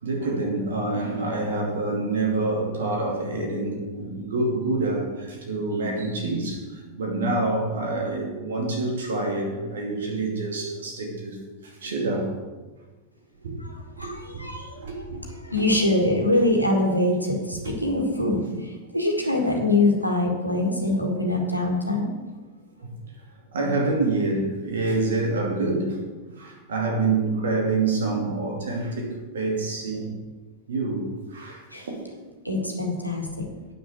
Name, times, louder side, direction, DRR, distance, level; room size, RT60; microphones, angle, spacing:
voice 1, 0.0-6.6 7.0-11.4 11.6-12.3 13.4-13.5 14.0-14.1 14.5-15.2 15.6-15.7 17.6-17.7 18.4-18.5 22.8-22.9 23.5-26.0 26.4-30.1 30.7-32.2 32.6-32.7, right 3 dB, 65° right, 1 dB, 2.4 m, -27 dB
voice 2, 13.6-14.8 15.2-22.1 31.7-31.9 32.4-33.5, left 2 dB, 90° left, 1 dB, 1.8 m, -24 dB
9.0 x 6.3 x 7.4 m, 1.3 s
figure-of-eight pair, 90°, 0 cm